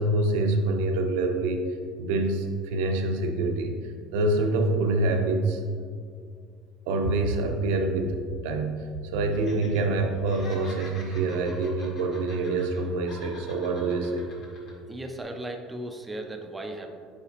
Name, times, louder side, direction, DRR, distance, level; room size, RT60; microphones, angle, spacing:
voice 1, 0.0-1.6 2.0-3.8 4.1-5.6 6.9-14.3, right 2 dB, 90° right, 4 dB, 0.6 m, -26 dB
Laughter, 9.3-9.8 10.1-12.8 13.1-14.7 15.1-15.2, left 2 dB, 40° left, 1.1 m, -46 dB
voice 2, 14.9-16.9, right 1 dB, 10° right, 3 dB, 0.4 m, -36 dB
6.8 x 4.9 x 2.9 m, 2.2 s
cardioid pair, 165°, 0 cm